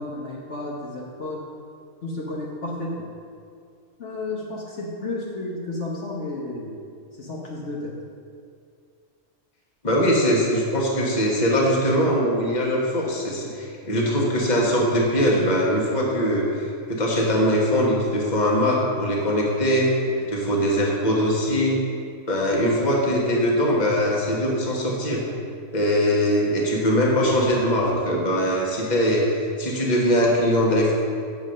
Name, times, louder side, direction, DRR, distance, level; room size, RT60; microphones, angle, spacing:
voice 1, 0.0-1.4 2.0-3.1 4.0-6.8 7.1-7.9, left 2 dB, 60° left, -3 dB, 1.3 m, -32 dB
voice 2, 9.8-16.5 16.9-21.8 22.3-25.2 25.7-30.9, equal, 35° left, -3 dB, 1.4 m, -21 dB
7.4 x 5.4 x 6.4 m, 2.3 s
omnidirectional pair, 1.4 m